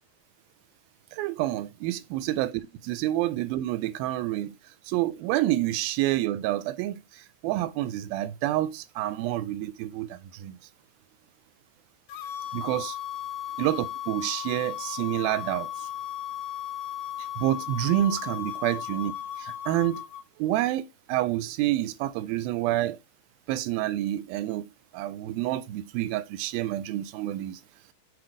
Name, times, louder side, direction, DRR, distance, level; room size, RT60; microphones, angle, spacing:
voice 1, 1.1-4.5 4.9-10.6 12.5-13.0 13.6-15.7 17.4-19.1 19.4-20.0 20.4-23.0 23.5-24.6 24.9-27.6, right 14 dB, 85° right, 2.4 m, -28 dB
sound 1, 12.1-20.2, left 11 dB, 90° left, 2.4 m, -36 dB
7.8 x 2.9 x 4.9 m
omnidirectional pair, 4.2 m